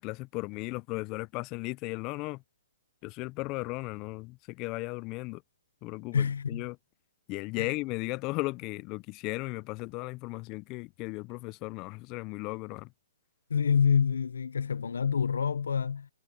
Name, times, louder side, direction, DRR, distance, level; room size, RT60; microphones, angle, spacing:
voice 1, 0.0-2.4 3.0-5.4 5.8-6.8 7.3-12.9, left 24 dB, 30° left, 0.5 m, -36 dB
voice 2, 6.1-6.7 7.6-7.7 13.5-16.1, left 6 dB, 80° left, 0.6 m, -27 dB
hypercardioid pair, 140°, 0 cm